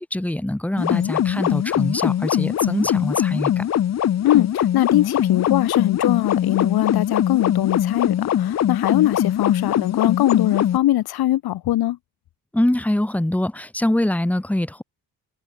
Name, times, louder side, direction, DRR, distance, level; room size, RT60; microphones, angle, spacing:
voice 1, 0.0-3.7 12.5-14.8, left 1 dB, 5° left, 3.9 m, -23 dB
sound 1, 0.8-10.8, left 10 dB, 45° left, 1.8 m, -22 dB
voice 2, 4.2-12.0, left 14 dB, 70° left, 4.0 m, -21 dB
cardioid pair, 175°, 38 cm